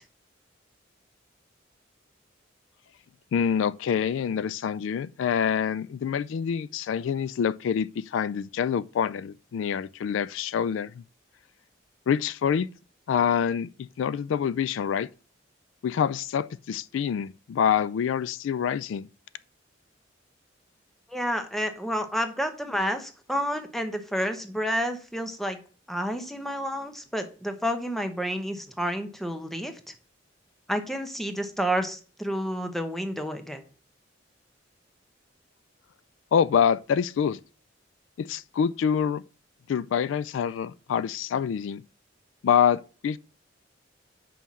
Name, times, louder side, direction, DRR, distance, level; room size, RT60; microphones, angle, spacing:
voice 1, 3.3-11.0 12.1-12.7 13.1-15.1 15.8-19.1 36.3-37.4 38.2-39.2 39.7-41.8 42.4-43.2, left 7 dB, 85° left, 0.3 m, -26 dB
voice 2, 21.1-25.6 25.9-29.8 30.7-33.6, equal, ahead, 0.8 m, -30 dB
5.6 x 4.2 x 6.1 m
head